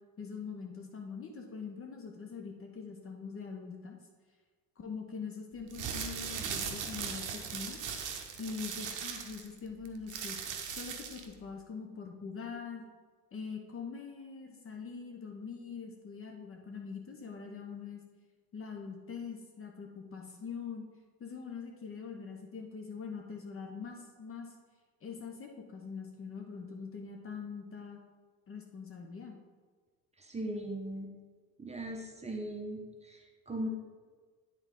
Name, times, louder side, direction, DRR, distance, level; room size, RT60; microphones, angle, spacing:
voice 1, 0.2-4.0 4.8-7.8 8.4-10.4 10.7-12.9 13.3-18.0 18.5-20.8 21.2-24.6 25.0-28.0 28.5-29.4, left 5 dB, 25° left, 2 dB, 0.9 m, -43 dB
sound 1, 5.6-11.3, right 7 dB, 40° right, 0.9 m, -39 dB
voice 2, 30.2-31.1 31.6-33.7, right 1 dB, 15° right, 2 dB, 1.0 m, -39 dB
10.0 x 4.1 x 3.7 m, 1.4 s
figure-of-eight pair, 60°, 50 cm